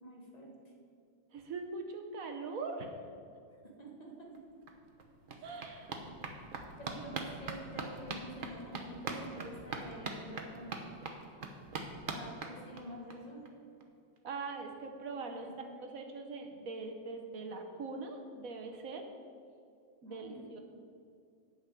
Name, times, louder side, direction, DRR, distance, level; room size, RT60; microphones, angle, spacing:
voice 1, 0.0-0.5 3.8-4.4 5.4-5.5 6.0-6.1 6.8-11.0 12.1-13.4 15.1-15.8 20.0-20.5, right 1 dB, 20° left, -1 dB, 1.6 m, -48 dB
voice 2, 1.3-2.9 5.4-5.9 14.2-15.5 15.8-19.0 20.0-20.6, right 3 dB, 55° right, 4 dB, 1.0 m, -42 dB
sound 1, 4.3-4.4 4.7-13.1 13.5-13.6 13.8-13.9 14.2-14.3, right 3 dB, 85° right, 0.4 m, -43 dB
9.0 x 6.0 x 8.2 m, 2.3 s
omnidirectional pair, 2.3 m